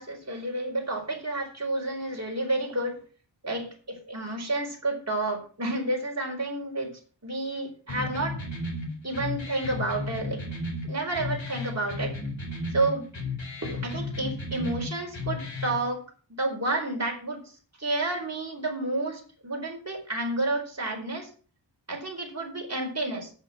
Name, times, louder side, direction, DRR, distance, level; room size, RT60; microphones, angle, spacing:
voice 1, 0.0-3.0 3.4-8.4 9.0-10.4 10.8-12.2 12.7-13.1 13.6-16.0 16.3-21.3 21.9-23.3, right 2 dB, 35° right, 0 dB, 4.4 m, -30 dB
sound 1, 7.9-15.9, left 2 dB, 85° left, 4.5 m, -34 dB
8.3 x 8.0 x 7.2 m, 0.39 s
wide cardioid pair, 70°, 44 cm